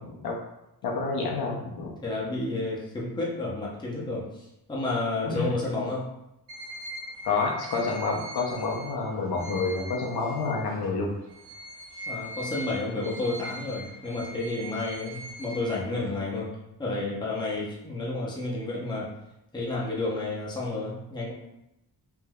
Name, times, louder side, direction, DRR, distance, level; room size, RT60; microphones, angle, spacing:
voice 1, 0.8-1.9 5.2-5.5 7.2-11.1, left 4 dB, 65° left, -1 dB, 0.7 m, -28 dB
voice 2, 2.0-6.1 12.1-16.5 16.8-19.1 19.5-21.3, left 2 dB, 10° left, -5 dB, 0.6 m, -31 dB
sound 1, 6.5-10.9 11.3-16.2, equal, 80° right, 1.1 m, -41 dB
3.4 x 2.6 x 2.2 m, 0.88 s
wide cardioid pair, 135°, 40 cm